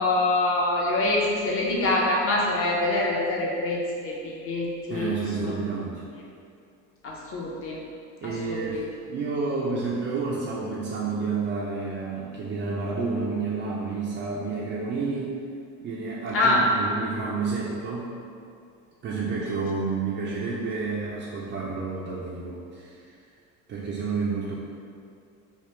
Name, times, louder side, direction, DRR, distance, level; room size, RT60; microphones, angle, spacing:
voice 1, 0.0-5.1 5.4-5.6 7.0-7.8 8.2-8.8 16.3-16.6, left 2 dB, 35° left, -3 dB, 0.7 m, -25 dB
voice 2, 4.9-6.0 8.2-8.8 9.1-15.4 15.8-18.2 19.0-23.2 23.7-24.6, right 4 dB, 35° right, -6 dB, 0.4 m, -30 dB
3.1 x 2.1 x 3.1 m, 2.4 s
supercardioid pair, 90°, 36 cm